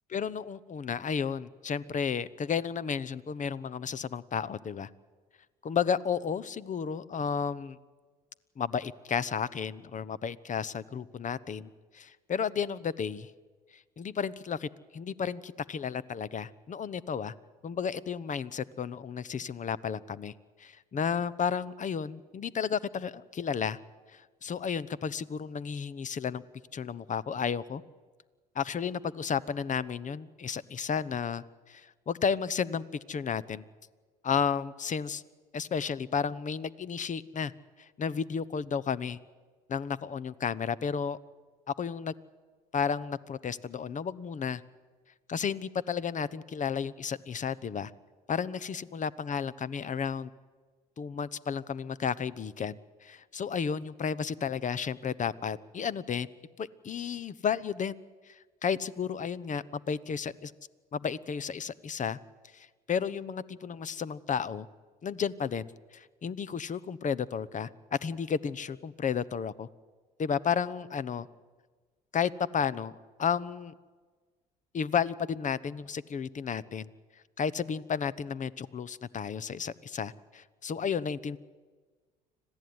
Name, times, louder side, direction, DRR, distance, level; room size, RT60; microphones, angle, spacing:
voice 1, 0.1-4.9 5.6-7.8 8.6-11.7 11.9-13.3 14.0-17.3 17.6-20.3 20.6-23.8 24.1-26.4 26.7-27.8 28.5-33.6 34.2-35.2 35.5-37.5 37.8-39.2 39.7-41.2 41.8-42.1 42.7-44.6 45.3-47.9 48.3-50.3 51.0-56.3 56.6-57.9 58.3-60.5 60.9-62.2 62.5-64.7 65.0-65.7 65.9-69.7 70.2-71.3 72.1-72.9 73.2-73.7 74.7-76.9 77.4-81.4, left 7 dB, 40° left, 19 dB, 1.0 m, -32 dB
26.0 x 16.0 x 9.6 m, 1.4 s
hypercardioid pair, 65°, 20 cm